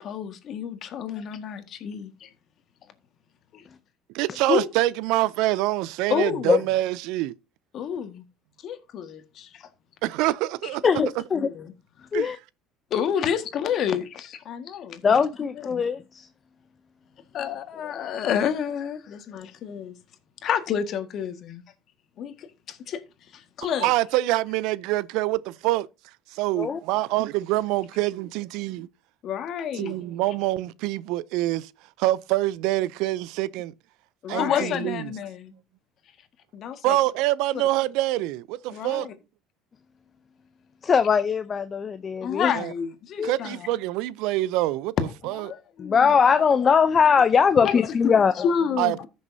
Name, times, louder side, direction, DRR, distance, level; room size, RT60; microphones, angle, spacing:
voice 1, 0.0-2.3 3.5-3.6 4.5-4.7 6.1-6.6 7.7-8.2 8.6-9.7 11.3-11.7 12.9-15.2 15.6-15.8 17.3-19.9 20.4-21.6 22.2-23.0 23.3-23.9 29.2-30.0 34.2-35.5 36.5-37.0 37.5-37.6 38.7-39.1 42.2-43.7 45.3-46.2 47.6-49.1, left 8 dB, 55° left, 1.7 m, -29 dB
voice 2, 4.1-7.3 10.0-10.9 12.1-12.3 23.8-25.9 26.3-28.9 29.7-31.7 32.0-33.7 34.3-35.1 36.8-39.1 42.5-42.7 43.2-44.9 45.2-45.5 48.8-49.1, right 17 dB, 75° right, 0.5 m, -25 dB
voice 3, 10.8-11.5 12.1-12.4 15.0-16.3 26.6-26.8 40.8-42.5 43.2-43.4 45.8-48.3, left 6 dB, 30° left, 0.6 m, -21 dB
14.5 x 6.4 x 2.7 m
supercardioid pair, 105°, 0 cm